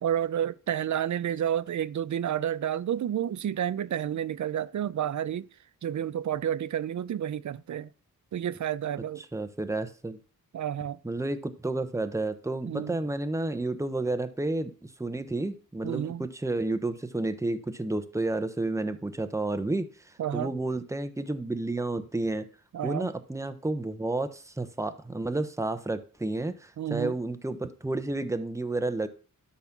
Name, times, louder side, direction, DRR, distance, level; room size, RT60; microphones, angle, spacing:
voice 1, 0.0-5.5 5.8-7.9 8.3-9.2 10.5-11.0 12.6-13.0 15.8-16.3 20.2-20.5 22.7-23.1 26.8-27.1, right 10 dB, 55° right, 0.6 m, -30 dB
voice 2, 9.3-10.2 11.0-22.5 22.8-29.1, right 2 dB, 10° right, 0.9 m, -31 dB
12.0 x 4.2 x 6.0 m
wide cardioid pair, 90°, 35 cm